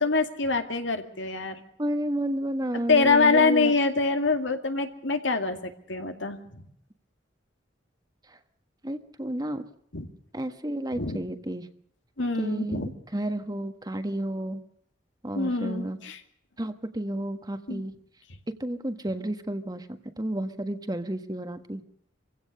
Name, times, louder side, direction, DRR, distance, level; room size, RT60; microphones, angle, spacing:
voice 1, 0.0-1.6 2.9-6.6 9.9-10.1 10.9-11.2 12.2-12.9 15.4-16.2 17.7-17.8, left 4 dB, 85° left, 6 dB, 2.3 m, -25 dB
voice 2, 1.8-3.7 8.3-8.4 8.8-9.6 10.3-11.7 12.4-14.6 15.2-16.0 16.6-17.9 18.6-19.9 20.2-21.8, right 1 dB, 20° right, 9 dB, 1.4 m, -31 dB
25.0 x 16.5 x 6.6 m, 0.67 s
head